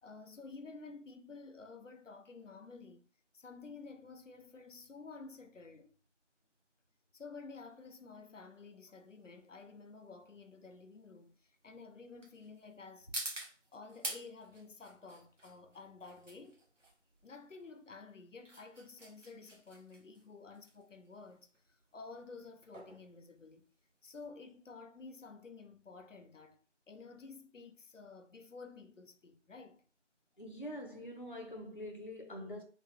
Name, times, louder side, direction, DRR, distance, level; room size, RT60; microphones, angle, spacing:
voice 1, 0.0-3.1 3.3-5.9 7.1-13.1 13.7-16.6 17.2-21.5 21.9-23.7 24.0-26.6 26.9-29.8, left 4 dB, 85° left, 0.7 m, -52 dB
sound 1, 7.5-24.2, right 1 dB, 85° right, 1.5 m, -49 dB
voice 2, 30.4-32.6, left 1 dB, 45° left, 0.5 m, -44 dB
3.2 x 3.1 x 2.7 m
figure-of-eight pair, 180°, 37 cm